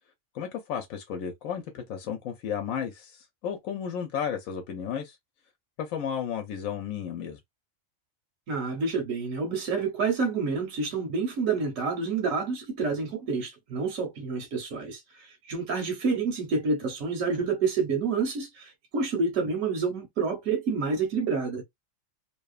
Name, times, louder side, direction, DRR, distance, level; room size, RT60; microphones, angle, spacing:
voice 1, 0.3-5.2 5.8-7.4, left 8 dB, 85° left, 1.0 m, -33 dB
voice 2, 8.5-21.6, right 4 dB, 75° right, 1.2 m, -28 dB
2.8 x 2.1 x 2.3 m
omnidirectional pair, 1.4 m